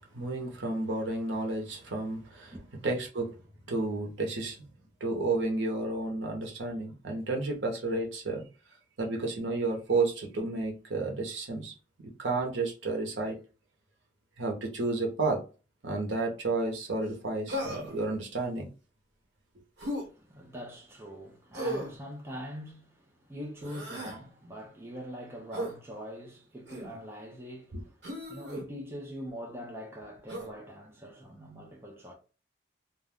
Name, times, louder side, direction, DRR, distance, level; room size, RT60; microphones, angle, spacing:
voice 1, 0.1-2.5 2.8-3.3 3.7-4.6 5.0-8.4 9.0-11.7 12.2-13.4 14.4-15.4 15.8-18.7, right 3 dB, 85° right, 0.8 m, -31 dB
Human voice, 17.5-18.0 19.8-20.1 21.5-22.0 23.6-24.2 25.5-25.7 26.7-27.0 28.0-28.6 30.3-30.5, equal, 70° right, 1.2 m, -36 dB
voice 2, 19.8-32.1, equal, 15° right, 0.6 m, -43 dB
2.4 x 2.2 x 3.5 m
head